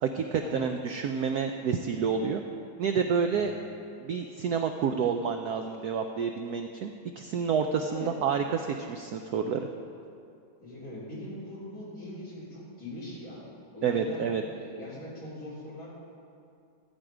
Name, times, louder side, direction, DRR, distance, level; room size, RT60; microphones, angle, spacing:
voice 1, 0.0-2.4 2.8-3.5 4.0-9.7 13.8-14.4, right 6 dB, 70° right, 5 dB, 0.9 m, -29 dB
voice 2, 7.8-8.1 10.6-13.4 13.7-15.9, left 1 dB, 45° left, -8 dB, 4.1 m, -41 dB
14.0 x 9.1 x 4.9 m, 2.4 s
omnidirectional pair, 2.2 m